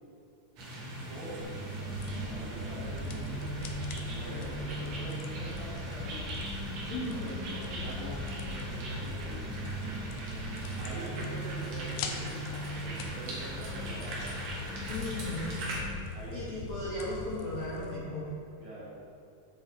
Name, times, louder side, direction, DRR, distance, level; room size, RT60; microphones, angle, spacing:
sound 1, 0.6-15.8, right 1 dB, 80° right, 1.5 m, -41 dB
voice 1, 1.1-1.7 2.2-3.6 4.2-6.4 7.1-7.3 7.5-9.4 10.8-14.9 16.1-16.4 18.6-18.9, right 1 dB, 55° right, -7 dB, 3.0 m, -45 dB
sound 2, 1.4-16.1, right 2 dB, 35° left, 2.0 m, -41 dB
sound 3, 1.9-18.0, left 4 dB, 85° left, 2.4 m, -42 dB
voice 2, 6.9-7.3 14.9-15.6 16.3-18.3, left 2 dB, 65° left, -9 dB, 1.9 m, -36 dB
9.9 x 6.6 x 4.2 m, 2.6 s
omnidirectional pair, 5.7 m